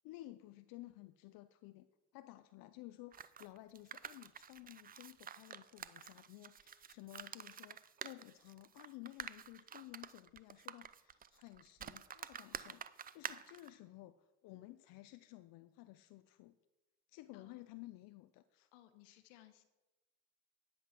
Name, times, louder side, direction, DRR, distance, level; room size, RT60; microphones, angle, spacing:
voice 1, 0.0-1.9 2.1-16.5 17.1-18.7, left 17 dB, 65° left, 11 dB, 0.6 m, -55 dB
sound 1, 3.1-13.7, right 8 dB, 25° right, 0.5 m, -49 dB
voice 2, 13.1-13.5 17.3-17.6 18.7-19.6, left 14 dB, 80° left, 10 dB, 1.3 m, -63 dB
10.5 x 7.9 x 5.9 m, 1.1 s
supercardioid pair, 85°, 37 cm